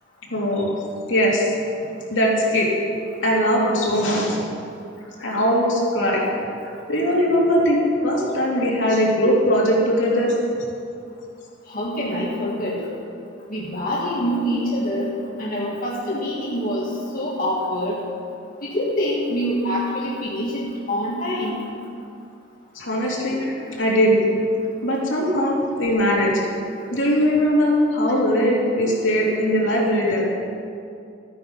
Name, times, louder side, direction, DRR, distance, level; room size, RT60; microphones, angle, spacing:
voice 1, 0.3-0.7 1.1-1.5 2.1-2.7 3.2-4.4 5.2-6.2 6.9-7.8 8.0-10.3 22.8-24.2 24.8-26.3 26.9-30.2, equal, 75° left, -4 dB, 2.8 m, -20 dB
voice 2, 11.7-12.8 13.5-18.0 18.6-21.6, equal, 45° left, -5 dB, 1.7 m, -25 dB
14.0 x 9.4 x 5.5 m, 2.5 s
head